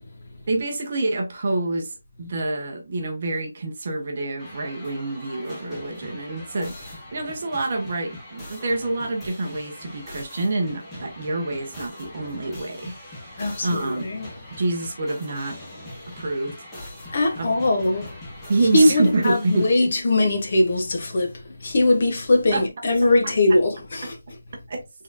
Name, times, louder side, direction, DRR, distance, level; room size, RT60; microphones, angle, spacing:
voice 1, 0.5-12.9 13.2-14.0 14.5-15.6 16.1-16.7 17.4-17.6 18.5-19.9 22.5-22.6 24.7-24.8, right 2 dB, 30° right, 0.8 m, -27 dB
sound 1, 4.4-19.8, left 1 dB, 5° left, 0.8 m, -41 dB
voice 2, 13.4-14.3 17.1-18.2 18.7-24.2, left 2 dB, 30° left, 0.9 m, -21 dB
4.2 x 3.6 x 2.6 m
figure-of-eight pair, 180°, 0 cm